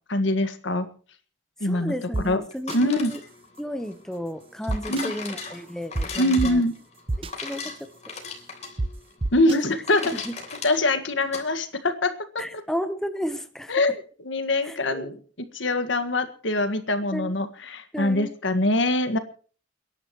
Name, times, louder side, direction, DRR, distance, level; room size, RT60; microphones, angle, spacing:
voice 1, 0.1-0.9 1.6-2.4 2.7-3.1 4.9-5.1 6.2-6.7 9.3-10.3 10.6-12.1 13.7-15.2 15.5-19.2, left 1 dB, 70° left, 10 dB, 1.8 m, -24 dB
voice 2, 1.6-3.2 3.6-6.6 7.2-7.8 9.5-9.6 10.1-10.3 12.4-13.8 14.6-15.1 17.1-17.3 17.9-18.3, equal, 5° left, 9 dB, 1.0 m, -33 dB
sound 1, 2.1-2.2 2.7-2.8 4.7-5.0 6.0-6.1 6.4-6.5 7.1-7.3 8.8-8.9 9.2-9.6, right 2 dB, 30° right, 0.6 m, -26 dB
sound 2, 2.5-11.5, left 4 dB, 35° left, 3.4 m, -38 dB
29.5 x 11.0 x 3.1 m, 0.41 s
head